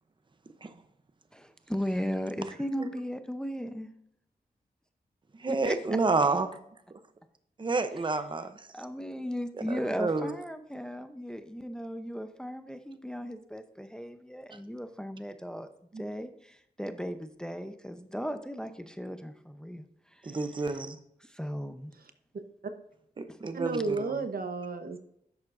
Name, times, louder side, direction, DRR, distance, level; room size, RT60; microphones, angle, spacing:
voice 1, 1.3-3.9 5.5-5.8 8.7-15.7 16.0-19.8 20.2-20.4 21.3-21.9 23.3-23.4, equal, 5° left, 8 dB, 0.7 m, -36 dB
voice 2, 5.4-6.5 6.9-7.0 7.6-8.7 9.7-10.3 15.9-16.0 20.2-21.0 23.2-24.2, right 3 dB, 30° right, 9 dB, 0.7 m, -30 dB
voice 3, 23.5-25.0, right 3 dB, 60° right, 8 dB, 0.9 m, -32 dB
10.5 x 7.2 x 2.6 m, 0.74 s
wide cardioid pair, 90°, 17 cm